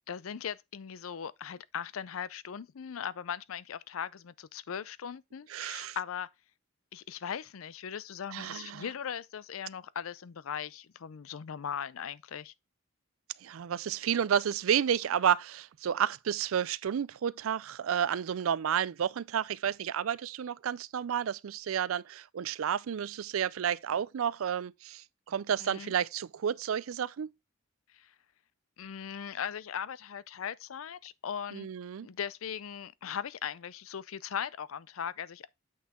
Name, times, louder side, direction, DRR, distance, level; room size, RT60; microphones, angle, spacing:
voice 1, 0.1-6.3 6.9-12.5 25.6-25.9 27.9-28.1 28.8-31.7 32.0-35.5, left 8 dB, 90° left, 0.5 m, -39 dB
voice 2, 5.5-6.0 8.3-8.9 13.4-27.3 31.5-32.1, right 8 dB, 90° right, 0.4 m, -31 dB
8.7 x 5.6 x 3.6 m
head